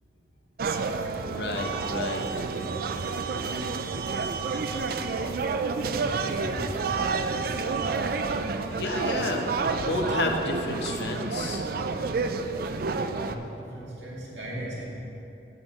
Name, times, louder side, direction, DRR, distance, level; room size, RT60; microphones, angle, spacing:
sound 1, 0.6-13.4, right 4 dB, 55° right, 0.4 m, -29 dB
voice 1, 1.2-2.3 5.2-5.3 6.1-6.3 6.9-7.0 8.7-11.6, left 2 dB, 70° left, 2 dB, 0.9 m, -31 dB
voice 2, 5.9-7.0 13.3-13.4 13.8-14.9, right 1 dB, 85° right, -5 dB, 2.2 m, -38 dB
8.1 x 7.8 x 4.2 m, 2.8 s
head